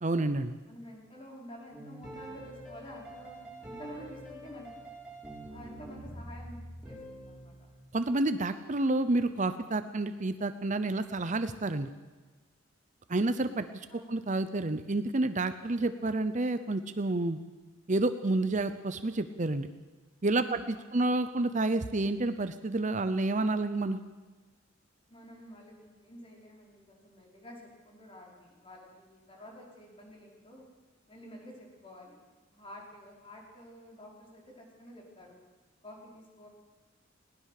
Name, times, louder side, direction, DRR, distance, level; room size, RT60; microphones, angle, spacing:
voice 1, 0.0-0.5 7.9-11.9 13.1-17.4 17.9-19.7 20.2-24.0, right 2 dB, 40° right, 11 dB, 0.8 m, -29 dB
voice 2, 0.6-4.9 5.5-6.6 6.8-7.7 13.9-14.2 20.3-21.0 25.1-30.6 31.1-35.4 35.8-36.5, equal, 25° left, -1 dB, 5.3 m, -49 dB
sound 1, 1.7-7.8, right 1 dB, 5° right, 7.0 m, -46 dB
21.0 x 19.0 x 6.7 m, 1.3 s
head